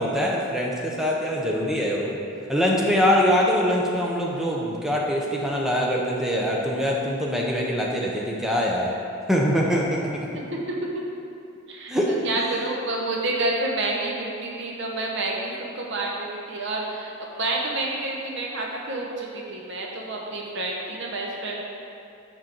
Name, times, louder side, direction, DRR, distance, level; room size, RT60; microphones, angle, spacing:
voice 1, 0.0-2.2 2.5-9.0 9.3-10.3 11.9-12.5, equal, ahead, -3 dB, 0.6 m, -23 dB
voice 2, 10.5-11.0 11.7-21.6, right 2 dB, 55° right, -1 dB, 0.9 m, -29 dB
6.3 x 5.1 x 4.4 m, 2.6 s
head